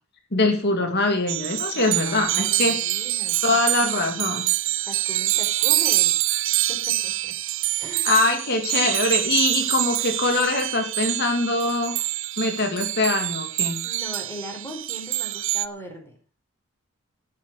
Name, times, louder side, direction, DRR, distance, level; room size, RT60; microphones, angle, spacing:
voice 1, 0.3-2.8 3.4-4.5 8.0-12.0 12.4-13.8, left 2 dB, 50° left, 5 dB, 2.5 m, -23 dB
sound 1, 1.3-15.7, right 16 dB, 60° right, 0.6 m, -25 dB
voice 2, 1.7-4.2 4.8-6.2 6.7-7.4 7.8-8.1 13.8-16.2, equal, 10° left, 3 dB, 4.2 m, -39 dB
13.5 x 8.6 x 6.6 m, 0.38 s
head